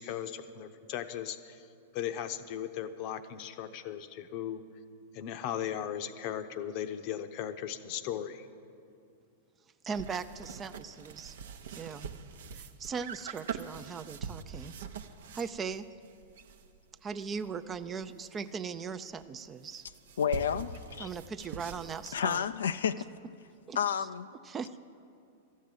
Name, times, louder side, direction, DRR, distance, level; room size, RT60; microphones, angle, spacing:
voice 1, 0.0-1.7 1.9-4.7 5.1-8.5, left 10 dB, 45° left, 11 dB, 0.7 m, -37 dB
voice 2, 9.8-11.4 11.7-12.1 12.5-14.8 15.3-15.9 17.0-19.8 21.0-22.5 23.7-23.8 24.4-24.8, right 5 dB, 20° right, 12 dB, 0.5 m, -39 dB
sound 1, 9.9-18.5 18.9-19.0 19.1-22.4, right 5 dB, 60° right, 0.7 m, -44 dB
voice 3, 20.2-21.1 22.1-23.0 23.8-24.3, left 8 dB, 65° left, 11 dB, 0.3 m, -30 dB
13.5 x 7.3 x 9.9 m, 2.5 s
figure-of-eight pair, 95°, 0 cm